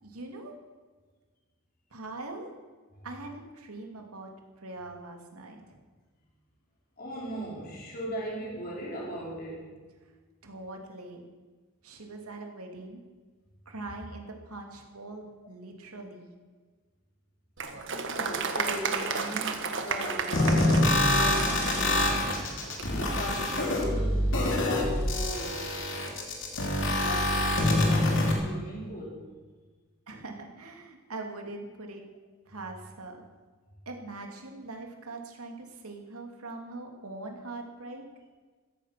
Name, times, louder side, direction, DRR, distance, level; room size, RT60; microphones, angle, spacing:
voice 1, 0.0-0.5 1.9-2.5 3.0-4.3 4.6-5.8 10.4-11.2 11.8-13.0 13.7-16.3 30.1-32.0 32.5-33.2 33.9-38.0, right 2 dB, 85° right, 3 dB, 2.9 m, -42 dB
voice 2, 7.0-9.7 18.1-22.2 23.2-25.7 26.9-29.3 38.1-38.2, equal, 40° left, -4 dB, 4.8 m, -38 dB
Applause, 17.6-23.1, right 5 dB, 55° right, 1.5 m, -33 dB
sound 1, 20.3-28.3, left 1 dB, 60° left, 3.2 m, -26 dB
15.0 x 14.5 x 6.0 m, 1.4 s
head